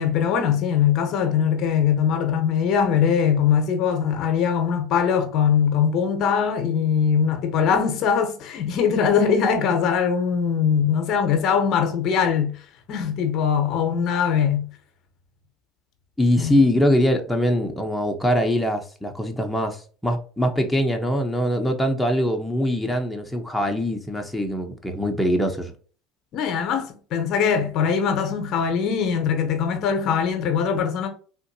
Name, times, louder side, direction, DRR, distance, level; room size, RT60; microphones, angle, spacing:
voice 1, 0.0-12.6 12.9-14.7 16.4-16.6 26.3-31.1, left 7 dB, 55° left, 0.8 m, -21 dB
voice 2, 16.2-25.7, equal, 5° left, 0.8 m, -22 dB
3.7 x 2.5 x 2.6 m
hypercardioid pair, 80°, 0 cm